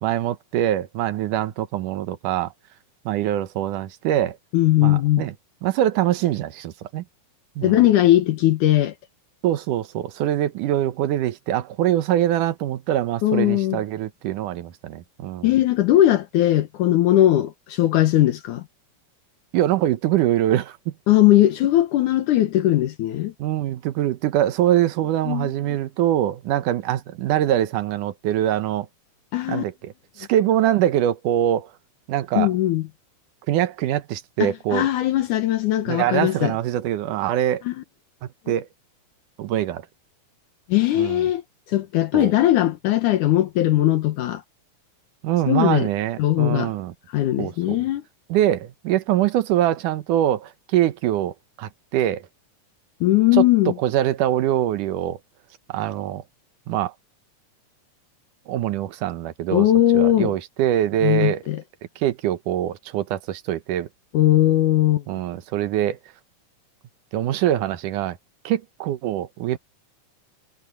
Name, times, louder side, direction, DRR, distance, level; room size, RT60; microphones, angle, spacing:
voice 1, 0.0-2.5 3.1-4.4 4.8-5.3 5.6-7.0 7.6-7.8 9.4-15.5 19.5-20.9 23.4-28.9 29.5-31.7 32.1-32.5 33.5-34.9 35.9-37.6 38.5-38.7 39.4-39.9 41.0-41.3 42.1-42.3 45.2-46.9 47.4-47.8 48.3-52.2 53.3-53.5 53.8-55.2 55.7-56.2 56.7-56.9 58.5-59.7 59.9-61.4 62.0-63.9 65.1-66.0 67.1-68.2 68.4-69.6, right 12 dB, 80° right, 2.5 m, -23 dB
voice 2, 4.5-5.3 7.6-8.9 13.2-13.8 15.4-18.6 21.1-23.3 25.3-25.5 29.3-29.6 32.3-32.9 34.4-36.5 37.7-37.8 40.7-41.4 41.7-44.4 45.5-45.9 46.2-46.7 47.1-48.0 53.0-53.7 59.5-60.3 61.0-61.6 64.1-65.0, left 14 dB, 75° left, 2.5 m, -19 dB
omnidirectional pair, 3.6 m